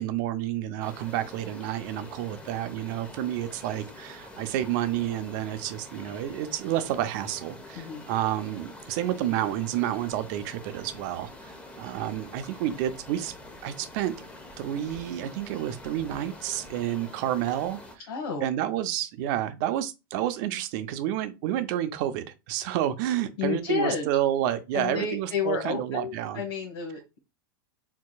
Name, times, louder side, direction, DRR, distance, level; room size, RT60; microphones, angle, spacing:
voice 1, 0.0-13.3 13.6-14.1 14.6-17.8 18.4-26.4, right 12 dB, 55° right, 0.6 m, -30 dB
sound 1, 0.8-17.9, left 2 dB, 10° left, 0.8 m, -46 dB
voice 2, 7.7-8.1 18.1-18.5 23.4-24.1 24.7-27.2, left 6 dB, 85° left, 1.4 m, -31 dB
4.6 x 3.7 x 2.3 m
supercardioid pair, 130°, 12 cm